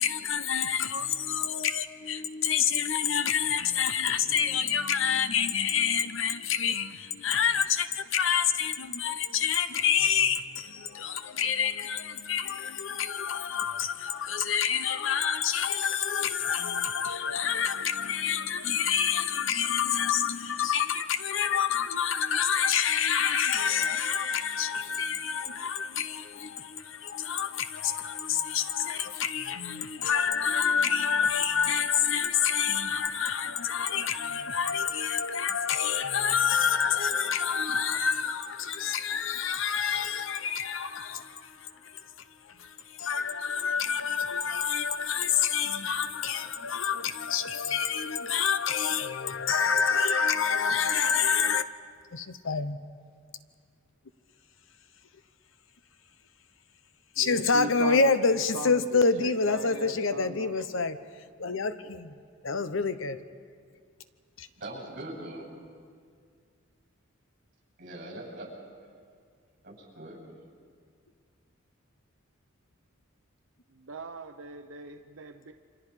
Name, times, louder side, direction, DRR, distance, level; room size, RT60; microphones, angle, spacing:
voice 1, 0.0-42.1 42.4-51.6 52.1-52.8 57.2-61.0 61.4-62.1 62.4-63.2 64.4-64.5, left 7 dB, 75° left, 0.9 m, -28 dB
voice 2, 57.2-60.6 73.7-75.5, right 3 dB, 80° right, 0.8 m, -39 dB
voice 3, 64.6-65.5 67.8-68.5 69.6-70.2, right 1 dB, 45° right, 7.6 m, -41 dB
28.5 x 26.0 x 4.9 m
head